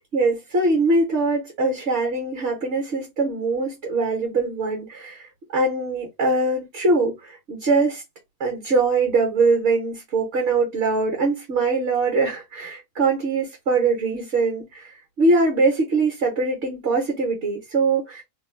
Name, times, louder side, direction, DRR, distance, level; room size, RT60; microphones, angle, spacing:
voice 1, 0.0-8.0 8.4-18.2, right 3 dB, 60° right, 1.3 m, -22 dB
2.9 x 2.2 x 3.2 m
omnidirectional pair, 1.3 m